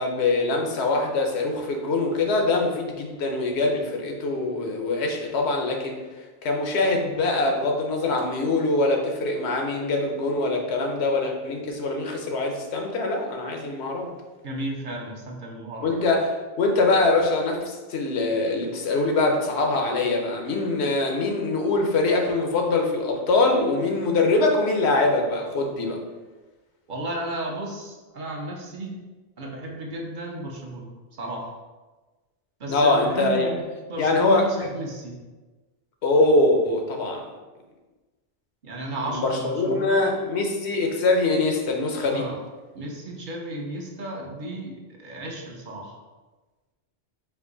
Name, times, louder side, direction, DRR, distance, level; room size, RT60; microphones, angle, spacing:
voice 1, 0.0-6.0 6.4-14.1 15.8-26.0 32.7-33.5 34.0-34.5 36.0-37.3 39.1-42.2, left 2 dB, 85° left, 2 dB, 1.0 m, -23 dB
voice 2, 14.4-16.0 26.9-29.0 29.4-30.9 31.2-31.5 32.6-35.2 38.6-40.0 42.1-42.4 42.7-46.0, right 1 dB, 55° right, 0 dB, 0.8 m, -34 dB
4.6 x 2.6 x 3.8 m, 1.2 s
omnidirectional pair, 1.1 m